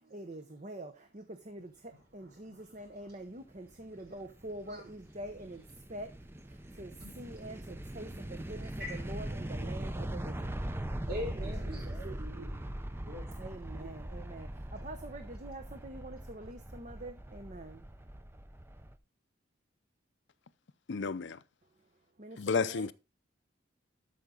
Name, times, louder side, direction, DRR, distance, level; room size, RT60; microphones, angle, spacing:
voice 1, 0.1-1.7 2.1-5.6 5.9-6.1 6.8-10.6 11.4-12.2 13.4-17.8 22.2-22.9, right 1 dB, 40° right, 0.9 m, -45 dB
voice 2, 2.2-3.1 4.7-4.8 7.0-7.1 8.8-9.1 11.0-13.9, left 1 dB, 55° right, 4.4 m, -44 dB
sound 1, 3.4-19.0, right 1 dB, 10° right, 0.5 m, -41 dB
voice 3, 20.9-21.4 22.4-22.9, left 5 dB, 60° left, 0.5 m, -31 dB
13.0 x 5.5 x 3.8 m
head